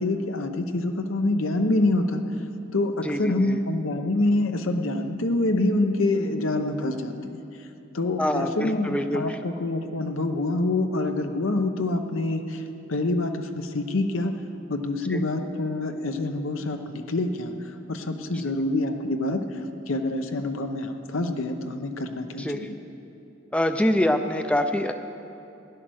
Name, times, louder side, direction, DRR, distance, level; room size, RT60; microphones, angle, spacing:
voice 1, 0.0-2.2 2.7-7.4 7.9-12.6 12.9-14.3 14.7-19.6 19.9-22.7, left 2 dB, 85° left, 6 dB, 0.9 m, -26 dB
voice 2, 3.0-3.6 8.2-9.2 15.1-15.2 22.4-22.6 23.5-24.9, left 1 dB, 5° left, 7 dB, 0.4 m, -25 dB
15.5 x 10.5 x 6.3 m, 2.8 s
head